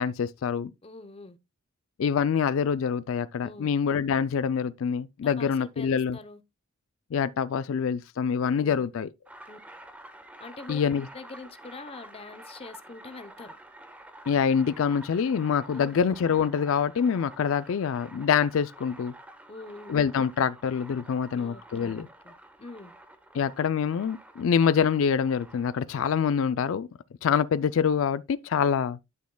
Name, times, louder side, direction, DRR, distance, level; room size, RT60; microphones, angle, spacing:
voice 1, 0.0-0.7 2.0-6.2 7.1-9.1 10.7-11.1 14.3-19.1 19.9-22.1 23.3-26.9 27.2-29.0, left 7 dB, 65° left, 0.4 m, -25 dB
voice 2, 0.8-1.4 3.4-3.7 5.2-6.4 8.6-8.9 9.5-9.6 10.4-10.8 11.1-13.5 15.7-16.0 19.5-20.0 21.3-22.9, left 3 dB, 30° left, 0.7 m, -44 dB
sound 1, 9.2-25.8, right 1 dB, 5° right, 0.9 m, -49 dB
11.5 x 6.3 x 2.2 m
head